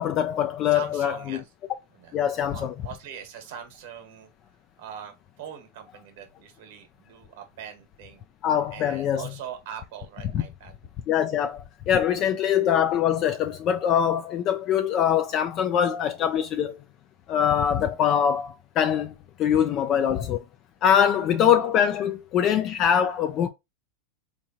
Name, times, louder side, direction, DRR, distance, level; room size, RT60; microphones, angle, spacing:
voice 1, 0.0-1.4 2.1-2.7 8.4-9.2 10.3-10.4 11.1-16.8 17.3-20.4 20.8-23.5, left 9 dB, 35° left, 0.4 m, -23 dB
voice 2, 0.7-1.4 1.9-2.1 2.4-4.3 4.8-8.2 8.7-10.7, right 8 dB, 65° right, 1.2 m, -41 dB
3.7 x 3.0 x 2.7 m
supercardioid pair, 140°, 0 cm